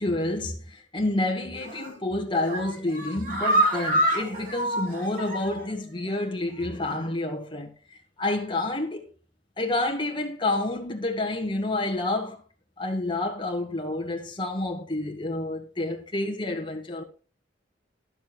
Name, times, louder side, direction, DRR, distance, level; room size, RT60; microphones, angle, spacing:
voice 1, 0.0-9.1 9.6-12.4 12.8-17.0, left 2 dB, 25° left, 1.6 m, -29 dB
sound 1, 1.6-2.0 2.3-5.7 6.1-6.2 6.5-6.6, right 1 dB, 45° right, 2.9 m, -27 dB
11.0 x 6.9 x 4.4 m
head